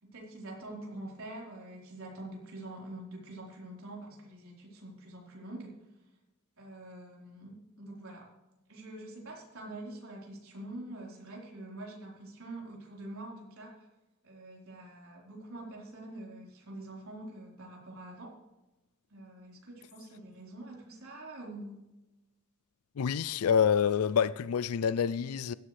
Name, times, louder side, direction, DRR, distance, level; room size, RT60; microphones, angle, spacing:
voice 1, 0.0-5.8 6.6-8.3 8.7-13.9 14.2-18.4 19.1-21.8, right 1 dB, 70° right, 4.3 m, -45 dB
voice 2, 23.0-25.5, left 7 dB, 90° left, 0.4 m, -27 dB
16.5 x 12.5 x 3.4 m
head